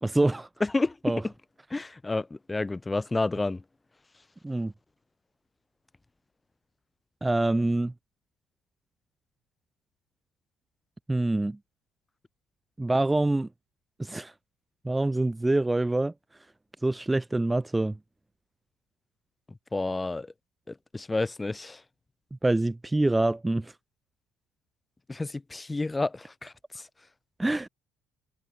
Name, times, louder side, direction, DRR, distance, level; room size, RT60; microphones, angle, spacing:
voice 1, 0.0-0.5 1.0-1.2 4.4-4.7 7.2-7.9 11.1-11.6 12.8-13.5 14.0-14.3 14.8-16.1 16.8-18.0 22.4-23.7 27.4-27.7, right 2 dB, 15° right, 0.3 m, -25 dB
voice 2, 0.6-1.3 1.7-3.6 19.7-20.3 20.7-21.8 25.1-26.9, left 2 dB, 20° left, 0.7 m, -30 dB
hypercardioid pair, 60°, 0 cm